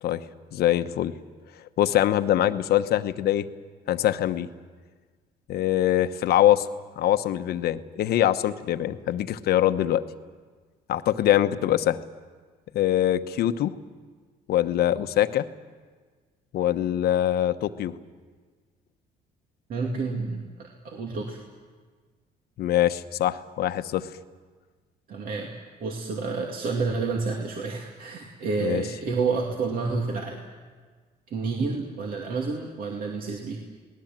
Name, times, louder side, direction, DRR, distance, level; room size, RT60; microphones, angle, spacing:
voice 1, 0.5-1.1 1.8-3.5 3.9-4.5 5.5-6.7 7.0-10.0 10.9-12.0 12.7-13.7 14.5-15.5 16.5-17.9 22.6-24.1 28.6-28.8, left 12 dB, 70° left, 10 dB, 1.0 m, -23 dB
voice 2, 19.7-21.4 25.1-25.5 25.8-30.4 31.3-33.6, right 4 dB, 60° right, 0 dB, 2.5 m, -29 dB
28.0 x 19.0 x 7.5 m, 1.5 s
cardioid pair, 110°, 17 cm